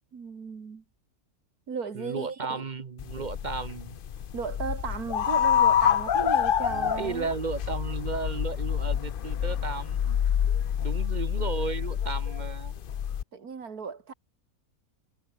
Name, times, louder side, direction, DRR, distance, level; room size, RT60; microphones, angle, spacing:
voice 1, 0.1-0.8 1.7-2.7 4.3-7.3 13.3-14.1, right 5 dB, 75° right, 2.6 m, -35 dB
voice 2, 1.9-4.0 6.7-10.2 10.8-12.8, right 4 dB, 35° right, 0.8 m, -34 dB
sound 1, 3.0-13.2, left 9 dB, 50° left, 0.6 m, -27 dB
omnidirectional pair, 1.6 m